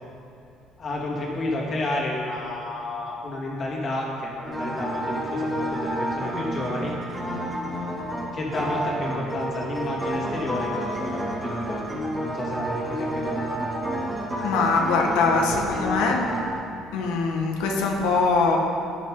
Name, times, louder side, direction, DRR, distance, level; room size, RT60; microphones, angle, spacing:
voice 1, 0.8-6.9 8.3-11.8 12.2-13.4, left 2 dB, 40° left, -3 dB, 3.1 m, -31 dB
sound 1, 4.4-16.4, right 1 dB, 10° right, 3.2 m, -30 dB
voice 2, 14.4-16.3 16.9-18.6, left 4 dB, 90° left, 0 dB, 1.7 m, -22 dB
14.0 x 10.5 x 4.0 m, 2.6 s
cardioid pair, 105°, 0 cm